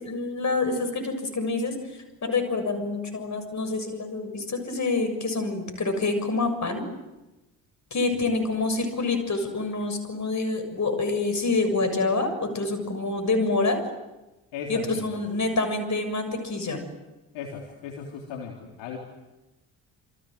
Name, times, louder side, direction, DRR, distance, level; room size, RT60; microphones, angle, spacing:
voice 1, 0.0-6.9 7.9-13.8 14.7-16.9, left 3 dB, 35° left, 8 dB, 7.0 m, -27 dB
voice 2, 14.5-15.2 17.3-19.0, left 6 dB, 60° left, 1 dB, 3.5 m, -37 dB
28.5 x 26.0 x 7.9 m, 1.0 s
figure-of-eight pair, 45°, 48 cm